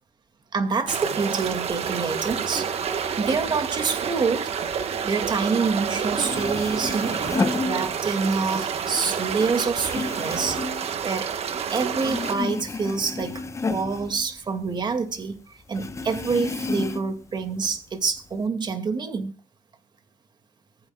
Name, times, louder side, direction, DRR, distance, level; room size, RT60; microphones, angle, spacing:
voice 1, 0.5-2.7 3.2-4.5 5.0-7.2 7.6-10.6 11.0-11.3 11.7-13.4 13.7-15.4 15.7-19.3, right 4 dB, 35° right, 2.1 m, -26 dB
sound 1, 0.9-12.3, right 7 dB, 50° right, 1.3 m, -29 dB
sound 2, 6.1-8.4 8.7-11.6 11.9-14.9 15.2-15.3 15.7-17.2 17.6-18.4, left 3 dB, 20° left, 1.0 m, -31 dB
23.5 x 9.9 x 2.3 m
cardioid pair, 110°, 13 cm